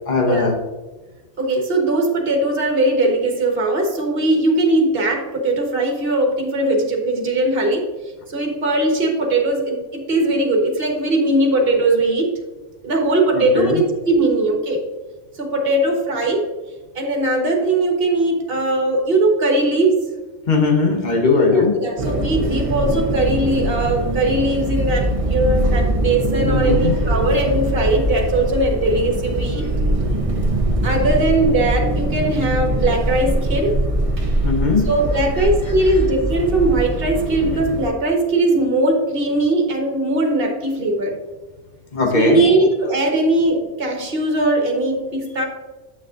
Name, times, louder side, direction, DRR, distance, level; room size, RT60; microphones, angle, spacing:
voice 1, 0.1-0.6 13.3-13.8 20.5-21.8 26.4-27.0 34.4-34.9 41.9-42.6, left 3 dB, 40° left, 2 dB, 1.2 m, -18 dB
voice 2, 1.4-7.8 8.3-12.4 12.8-14.8 15.3-16.5 16.9-20.1 21.5-29.7 30.8-33.8 34.9-41.2 42.1-45.5, right 2 dB, 50° right, 1 dB, 1.5 m, -19 dB
sound 1, 22.0-37.9, right 1 dB, 30° right, 0.8 m, -22 dB
8.2 x 6.4 x 2.5 m, 1.2 s
omnidirectional pair, 1.2 m